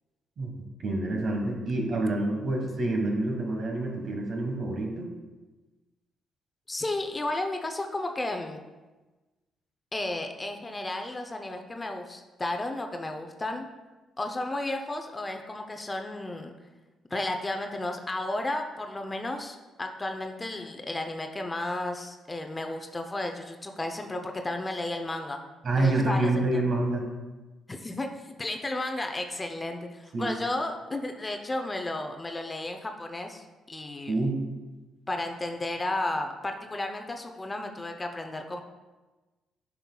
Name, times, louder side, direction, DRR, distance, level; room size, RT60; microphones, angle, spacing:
voice 1, 0.8-5.1 25.6-27.1 30.1-30.3 34.1-34.4, right 2 dB, 55° right, 1 dB, 1.4 m, -27 dB
voice 2, 6.7-8.6 9.9-13.7 14.2-16.5 17.1-25.4 25.8-26.6 27.7-34.2 35.1-38.6, left 2 dB, 20° left, 4 dB, 0.6 m, -33 dB
9.1 x 5.7 x 2.3 m, 1.2 s
cardioid pair, 90°, 0 cm